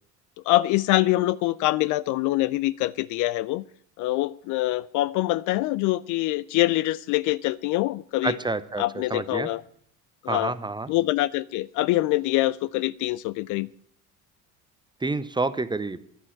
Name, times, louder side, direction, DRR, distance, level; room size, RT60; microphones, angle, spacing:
voice 1, 0.5-3.6 4.0-8.4 8.8-9.6 10.2-10.5 10.9-13.7, left 17 dB, 50° left, 20 dB, 0.5 m, -24 dB
voice 2, 8.2-8.8 9.1-9.5 10.3-10.9 15.0-16.0, right 3 dB, 10° right, 14 dB, 0.8 m, -28 dB
11.0 x 10.0 x 7.5 m, 0.65 s
figure-of-eight pair, 65°, 42 cm